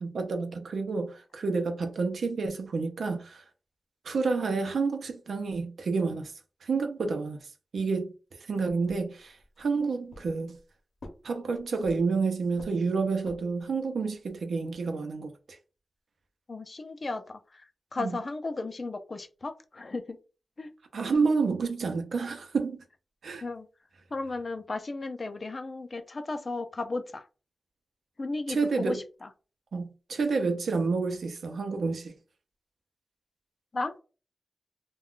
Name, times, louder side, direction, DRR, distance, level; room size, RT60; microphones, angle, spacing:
voice 1, 0.0-3.4 4.0-6.3 6.6-7.4 7.7-8.1 8.5-10.6 11.2-15.3 18.0-18.2 20.9-22.8 23.2-23.4 28.5-29.0 29.7-32.1, right 4 dB, 85° right, 0.5 m, -29 dB
sound 1, 8.9-9.7 10.1-10.7 11.0-12.2 12.6-13.7, left 2 dB, 70° left, 0.7 m, -49 dB
voice 2, 16.5-20.2 20.6-20.7 23.4-23.7 24.1-27.3 28.2-29.3 33.7-33.9, left 3 dB, 45° left, 0.4 m, -35 dB
2.3 x 2.2 x 3.6 m
wide cardioid pair, 95°, 0 cm